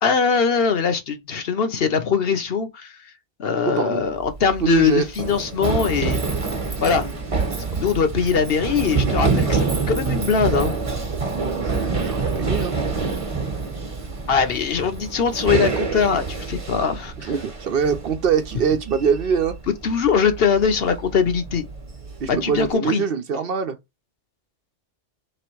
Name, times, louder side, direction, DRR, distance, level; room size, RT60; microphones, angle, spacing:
voice 1, 0.0-2.9 3.4-6.2 6.8-7.1 7.8-10.7 14.3-17.3 19.8-21.7 22.3-23.0, left 6 dB, 60° left, 1.0 m, -21 dB
voice 2, 3.6-4.0 4.6-5.0 11.3-12.8 17.2-19.6 22.2-23.8, right 6 dB, 60° right, 0.8 m, -23 dB
Run, 4.2-22.7, right 4 dB, 30° right, 1.0 m, -27 dB
3.3 x 3.1 x 4.5 m
omnidirectional pair, 1.2 m